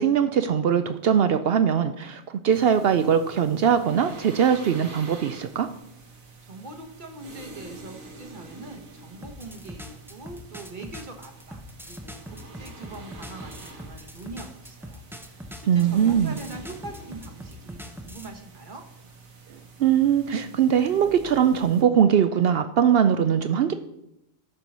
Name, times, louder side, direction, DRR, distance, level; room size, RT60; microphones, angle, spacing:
voice 1, 0.0-5.7 15.7-16.4 19.8-23.7, right 8 dB, 65° right, 10 dB, 0.6 m, -21 dB
sound 1, 2.5-21.8, right 3 dB, 80° right, 1.7 m, -46 dB
voice 2, 6.4-18.8, right 2 dB, 40° right, 4 dB, 1.1 m, -43 dB
sound 2, 9.2-18.3, equal, 5° right, 0.4 m, -42 dB
12.5 x 4.6 x 5.3 m, 0.81 s
omnidirectional pair, 1.4 m